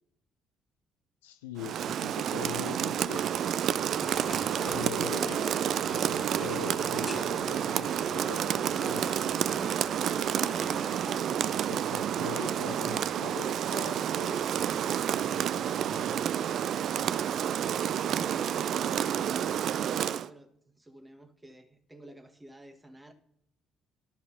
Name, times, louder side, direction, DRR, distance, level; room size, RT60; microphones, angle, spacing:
voice 1, 1.2-3.3 4.6-5.5 5.9-9.8 11.7-16.3, left 9 dB, 85° left, 9 dB, 0.6 m, -43 dB
Rain, 1.6-20.3, right 9 dB, 60° right, 0.3 m, -30 dB
sound 1, 4.0-11.2, left 3 dB, 25° left, 0.5 m, -43 dB
voice 2, 18.1-23.1, right 1 dB, 15° right, 5 dB, 1.4 m, -51 dB
11.5 x 4.7 x 5.6 m, 0.76 s
hypercardioid pair, 50°, 0 cm